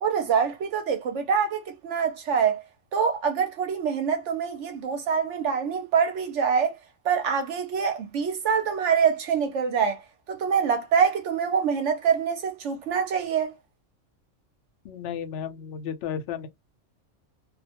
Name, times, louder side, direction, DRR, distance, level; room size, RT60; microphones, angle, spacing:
voice 1, 0.0-2.6 2.9-6.7 7.0-10.0 10.3-13.6, right 6 dB, 65° right, 0.8 m, -25 dB
voice 2, 14.8-16.5, left 8 dB, 65° left, 0.7 m, -33 dB
2.4 x 2.1 x 2.8 m
omnidirectional pair, 1.5 m